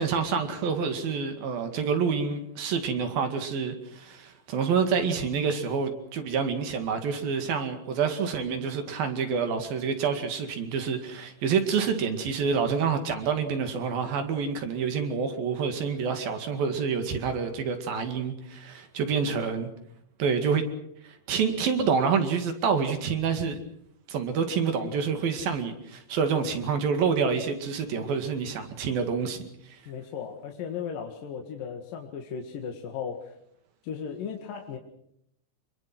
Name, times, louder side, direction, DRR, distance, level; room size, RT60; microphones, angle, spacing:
voice 1, 0.0-19.7 20.2-20.7 21.0-23.6 24.1-29.8, right 6 dB, 70° right, 7 dB, 4.0 m, -27 dB
voice 2, 29.9-33.3 33.8-34.8, left 7 dB, 65° left, 3 dB, 3.4 m, -36 dB
27.0 x 22.5 x 6.1 m, 0.75 s
omnidirectional pair, 4.4 m